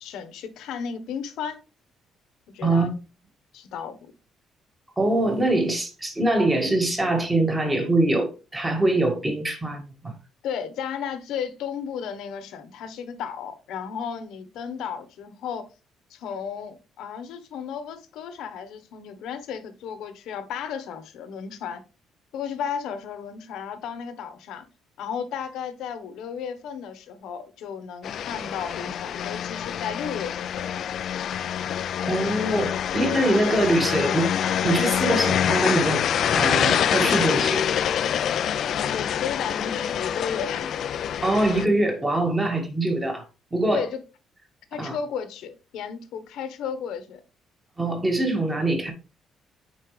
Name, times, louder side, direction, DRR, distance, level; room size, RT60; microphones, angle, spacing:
voice 1, 0.0-1.6 2.5-3.0 3.5-4.1 10.4-15.7 16.1-21.8 22.3-24.6 25.0-30.8 38.7-40.7 43.7-44.0 44.7-47.2, left 7 dB, 75° left, 1.1 m, -34 dB
voice 2, 5.0-10.1 32.0-34.3 34.6-36.0 36.3-37.8 41.2-43.2 43.5-43.8 44.8-45.0 47.8-48.9, right 2 dB, 15° right, 1.9 m, -23 dB
sound 1, 28.0-41.7, left 9 dB, 55° left, 0.4 m, -26 dB
9.2 x 4.6 x 3.3 m
cardioid pair, 140°, 0 cm